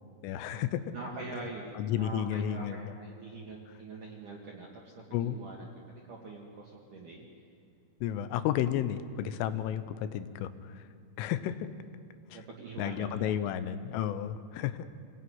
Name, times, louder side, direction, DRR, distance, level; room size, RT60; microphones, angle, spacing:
voice 1, 0.2-0.8 1.8-2.9 5.1-5.4 8.0-10.5 10.8-10.9 11.2-11.7 12.3-12.4 12.8-14.9, left 10 dB, 85° left, 11 dB, 3.5 m, -32 dB
voice 2, 0.9-4.8 5.1-5.7 6.1-7.3 12.3-13.4, right 3 dB, 55° right, -2 dB, 2.8 m, -44 dB
26.5 x 18.0 x 9.5 m, 2.3 s
omnidirectional pair, 5.6 m